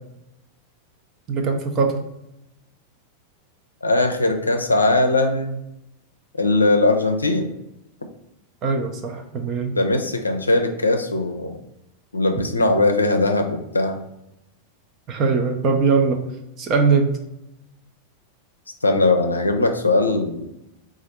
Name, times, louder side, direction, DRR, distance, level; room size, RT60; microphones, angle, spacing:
voice 1, 1.3-1.9 8.6-9.8 15.1-16.3 16.6-17.2, right 4 dB, 30° right, 3 dB, 0.5 m, -21 dB
voice 2, 3.8-5.6 6.4-7.5 9.8-11.6 12.1-14.0 18.8-20.5, left 2 dB, 80° left, 5 dB, 0.5 m, -20 dB
4.0 x 2.4 x 4.3 m, 0.87 s
figure-of-eight pair, 90°, 0 cm